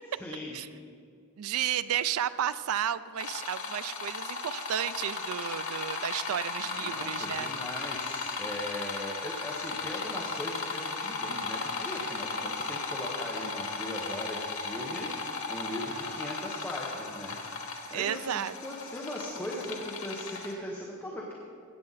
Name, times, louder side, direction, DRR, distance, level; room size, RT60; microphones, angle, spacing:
voice 1, 0.2-0.6 6.8-21.3, left 1 dB, 10° left, -3 dB, 1.0 m, -39 dB
voice 2, 1.4-7.5 17.9-18.5, right 9 dB, 75° right, 15 dB, 0.4 m, -32 dB
sound 1, 3.2-20.5, left 4 dB, 65° left, 1.2 m, -36 dB
15.0 x 8.7 x 4.0 m, 2.4 s
head